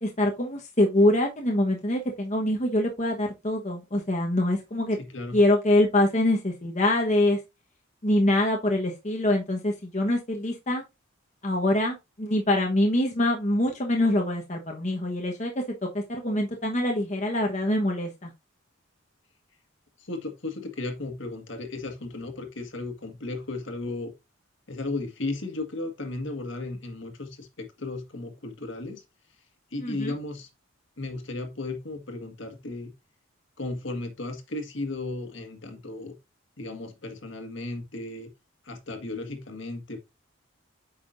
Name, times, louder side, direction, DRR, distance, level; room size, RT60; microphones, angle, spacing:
voice 1, 0.0-5.0 5.3-7.4 8.0-10.8 11.4-15.5 15.8-18.3 29.8-30.1, left 1 dB, 35° left, 1.2 m, -24 dB
voice 2, 5.0-5.4 20.0-24.1 24.7-29.0 29.7-30.5 31.0-32.9 33.6-36.1 36.6-38.3 38.6-40.0, left 2 dB, 65° left, 1.7 m, -35 dB
8.6 x 6.0 x 2.6 m
head